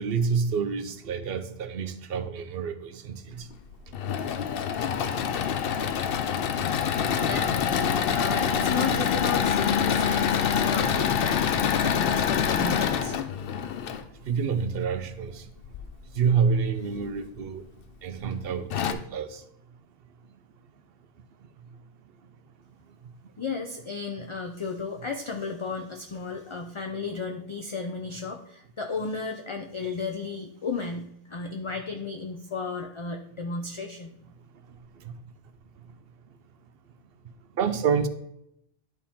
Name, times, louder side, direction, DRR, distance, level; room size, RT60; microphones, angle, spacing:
voice 1, 0.0-3.5 14.3-15.4 16.2-17.6 18.0-19.3 37.6-38.1, right 6 dB, 75° right, 0.8 m, -27 dB
Engine / Mechanisms, 3.7-14.0 15.6-16.4 17.0-17.1 17.4-17.5 18.3-18.4 18.7-18.9, left 7 dB, 70° left, 0.8 m, -26 dB
voice 2, 7.1-13.2 23.4-34.1, left 4 dB, 35° left, 0.5 m, -34 dB
11.0 x 4.3 x 3.6 m
omnidirectional pair, 1.0 m